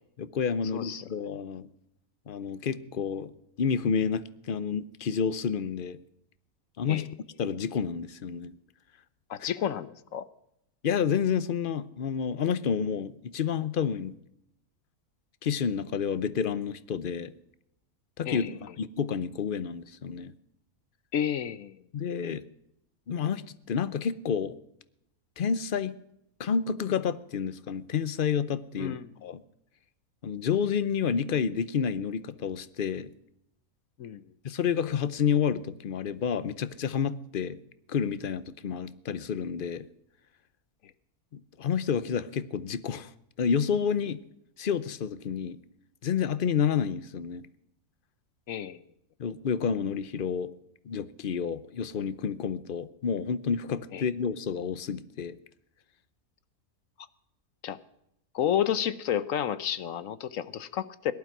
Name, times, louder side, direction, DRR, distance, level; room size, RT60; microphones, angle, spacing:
voice 1, 0.2-1.7 2.3-3.3 3.6-6.0 6.8-7.0 7.4-8.5 10.8-14.1 15.4-17.3 18.2-18.5 18.8-20.3 21.9-22.4 23.1-24.6 25.4-25.9 26.4-29.0 29.2-29.4 30.2-33.1 34.4-37.6 37.9-39.9 41.3-43.1 43.4-44.2 44.6-45.6 46.0-47.5 49.2-50.5 50.8-55.4, left 7 dB, 45° left, 16 dB, 0.7 m, -29 dB
voice 2, 0.7-1.0 6.9-7.1 9.3-10.3 18.3-18.6 21.1-21.8 28.8-29.1 34.0-34.2 48.5-48.8 53.9-54.0 57.6-57.8 58.3-61.1, left 9 dB, 65° left, 16 dB, 1.1 m, -31 dB
18.0 x 12.0 x 6.0 m, 0.78 s
omnidirectional pair, 1.6 m